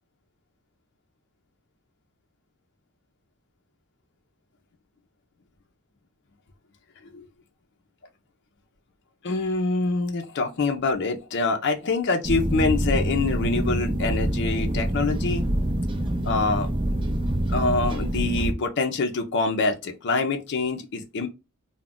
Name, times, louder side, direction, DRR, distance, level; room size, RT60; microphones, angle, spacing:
voice 1, 9.2-15.5 16.2-16.7 17.5-21.3, left 3 dB, 55° left, 0.5 m, -25 dB
sound 1, 12.2-18.5, right 1 dB, 25° right, 0.4 m, -26 dB
2.3 x 2.1 x 3.6 m
head